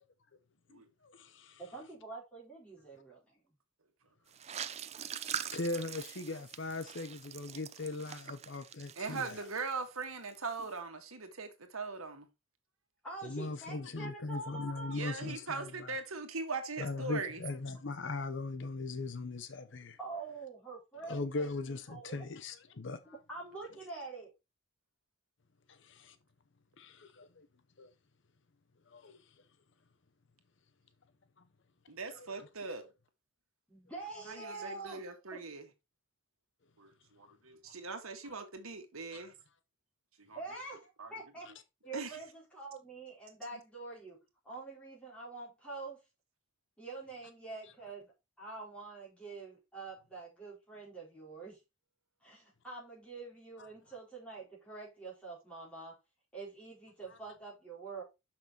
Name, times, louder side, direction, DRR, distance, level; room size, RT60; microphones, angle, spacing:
voice 1, 1.0-1.6 5.5-9.3 13.2-15.7 16.8-20.0 21.1-23.0 25.8-26.1 26.8-27.5 27.8-27.9 28.9-29.2 32.1-32.3 37.3-37.4 39.1-39.3, left 3 dB, 60° left, 0.7 m, -39 dB
voice 2, 1.6-3.4 13.0-15.0 20.0-22.3 23.3-24.3 33.7-35.0 35.3-35.4 40.3-41.5 41.8-44.2 44.4-46.0 46.8-48.1 48.4-51.6 52.2-56.0 56.3-58.0, right 3 dB, 5° left, 4.5 m, -46 dB
sound 1, 4.3-10.0 10.3-10.7, right 8 dB, 30° right, 0.4 m, -44 dB
voice 3, 8.9-12.3 14.9-17.4 31.9-32.8 34.3-35.6 36.8-39.3 40.3-40.4 41.0-41.1 41.9-42.2, right 4 dB, 90° right, 1.6 m, -40 dB
6.5 x 5.9 x 4.3 m
head